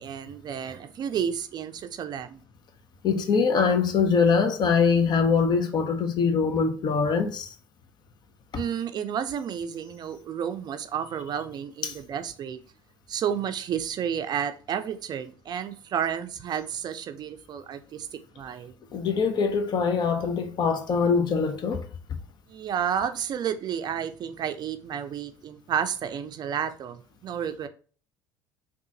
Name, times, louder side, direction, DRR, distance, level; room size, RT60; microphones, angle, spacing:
voice 1, 0.0-2.4 8.5-12.6 13.1-18.1 18.4-18.7 22.5-27.7, right 8 dB, 40° right, 0.4 m, -31 dB
voice 2, 3.0-7.5 11.8-12.0 18.9-21.9, left 5 dB, 40° left, 0.7 m, -23 dB
3.7 x 2.3 x 2.8 m
hypercardioid pair, 70°, 11 cm